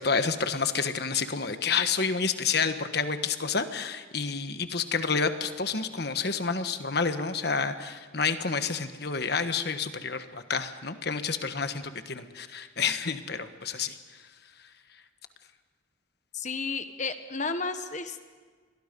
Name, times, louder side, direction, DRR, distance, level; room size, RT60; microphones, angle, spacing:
voice 1, 0.0-14.0, left 5 dB, 55° left, 9 dB, 1.3 m, -29 dB
voice 2, 16.3-18.2, left 4 dB, 40° left, 9 dB, 1.4 m, -32 dB
28.5 x 22.5 x 5.4 m, 1.5 s
head